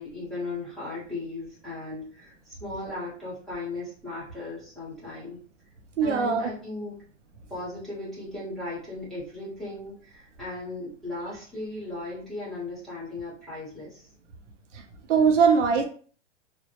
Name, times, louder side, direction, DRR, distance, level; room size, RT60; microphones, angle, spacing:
voice 1, 0.0-5.4 6.0-7.0 7.5-14.1, left 2 dB, ahead, -9 dB, 0.8 m, -37 dB
voice 2, 6.0-6.5 15.1-15.8, right 6 dB, 80° right, 4 dB, 0.7 m, -20 dB
2.1 x 2.0 x 2.8 m, 0.43 s
hypercardioid pair, 150°, 36 cm